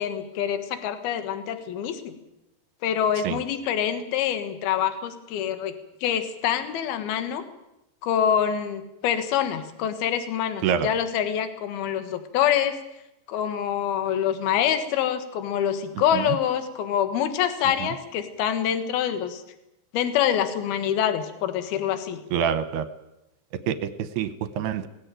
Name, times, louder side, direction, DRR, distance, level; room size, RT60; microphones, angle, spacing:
voice 1, 0.0-2.2 2.8-5.7 6.0-7.4 8.0-12.7 13.3-19.4 19.9-22.2, left 9 dB, 65° left, 9 dB, 3.1 m, -26 dB
voice 2, 22.3-22.9 23.7-24.9, right 8 dB, 75° right, 12 dB, 2.7 m, -26 dB
19.5 x 16.0 x 9.1 m, 0.90 s
omnidirectional pair, 5.1 m